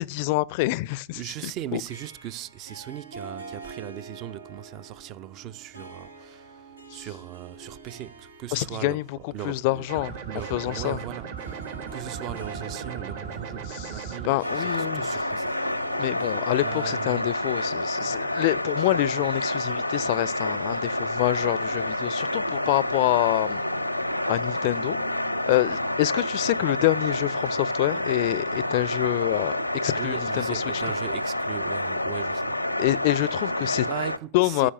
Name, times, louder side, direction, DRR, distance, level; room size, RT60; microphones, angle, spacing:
voice 1, 0.0-1.8 6.9-7.1 8.5-10.1 10.5-11.0 13.7-15.0 16.0-23.6 24.3-25.0 25.5-29.5 29.8-30.8 32.8-33.9 34.3-34.7, left 19 dB, 50° left, 0.4 m, -26 dB
voice 2, 1.1-9.0 9.3-9.9 10.3-15.6 16.6-17.3 22.5-22.6 30.0-32.6 33.8-34.7, right 12 dB, 40° right, 0.5 m, -38 dB
Harp, 1.9-18.6, right 4 dB, 80° right, 1.3 m, -45 dB
sound 1, 9.9-14.3, right 6 dB, 55° right, 1.7 m, -37 dB
sound 2, 14.4-34.2, left 1 dB, 90° left, 0.6 m, -28 dB
14.5 x 5.1 x 7.0 m
figure-of-eight pair, 90°, 0 cm